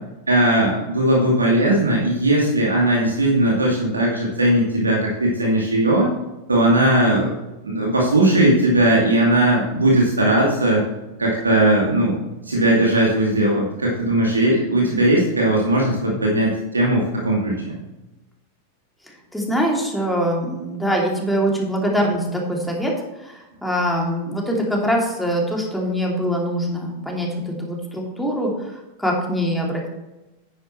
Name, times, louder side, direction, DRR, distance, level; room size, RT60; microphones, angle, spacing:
voice 1, 0.3-6.1 6.5-7.3 7.6-10.8 11.2-12.1 12.4-17.7, right 1 dB, 75° right, -3 dB, 2.5 m, -18 dB
voice 2, 19.3-22.9 23.2-29.9, equal, 5° left, -2 dB, 2.8 m, -23 dB
11.0 x 9.8 x 3.2 m, 1.0 s
figure-of-eight pair, 90°, 0 cm